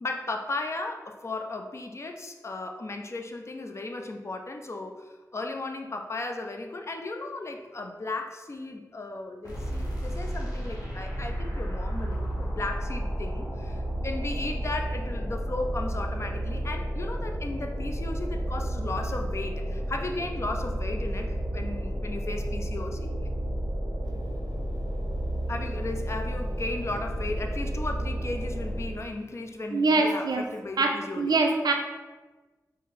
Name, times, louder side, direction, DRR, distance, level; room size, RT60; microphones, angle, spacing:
voice 1, 0.0-23.3 25.5-31.4, left 2 dB, 45° left, 4 dB, 0.4 m, -35 dB
sound 1, 9.4-29.1, equal, 80° left, 1.0 m, -32 dB
voice 2, 29.7-30.4 30.8-31.7, right 3 dB, 80° right, 3 dB, 0.5 m, -24 dB
3.9 x 2.0 x 4.1 m, 1.2 s
cardioid pair, 60°, 7 cm